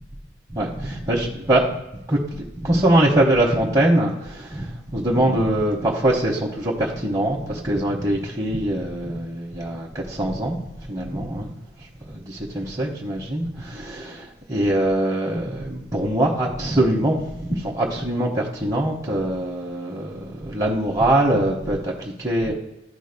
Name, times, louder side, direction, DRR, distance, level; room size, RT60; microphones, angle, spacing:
voice 1, 0.5-1.6 2.1-11.5 12.0-22.5, right 1 dB, 20° right, -4 dB, 1.0 m, -23 dB
12.5 x 5.0 x 2.2 m, 0.91 s
head